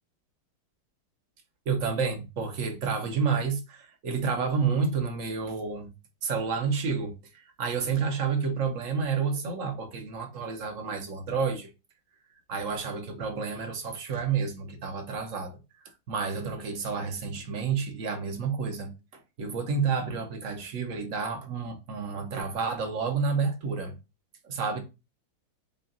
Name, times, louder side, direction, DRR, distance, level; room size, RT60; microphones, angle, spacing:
voice 1, 1.7-5.9 6.2-7.1 7.6-11.7 12.5-15.6 16.1-18.9 19.4-23.9 24.4-24.8, right 5 dB, 50° right, 1.1 m, -30 dB
5.7 x 2.4 x 3.8 m
omnidirectional pair, 2.3 m